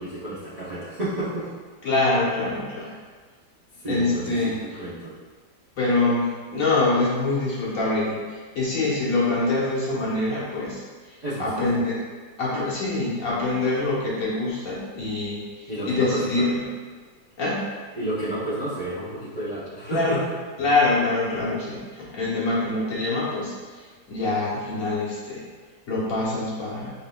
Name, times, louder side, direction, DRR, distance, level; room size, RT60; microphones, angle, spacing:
voice 1, 0.0-1.5 2.8-3.0 3.8-5.1 11.2-11.6 15.7-16.4 17.9-20.2, right 1 dB, 35° right, -11 dB, 0.7 m, -31 dB
voice 2, 1.8-2.9 3.8-4.8 5.7-12.0 12.4-16.6 17.4-17.7 19.9-20.2 20.6-25.4 25.9-26.9, left 2 dB, 55° left, -7 dB, 1.4 m, -25 dB
4.7 x 3.8 x 2.3 m, 1.5 s
omnidirectional pair, 1.8 m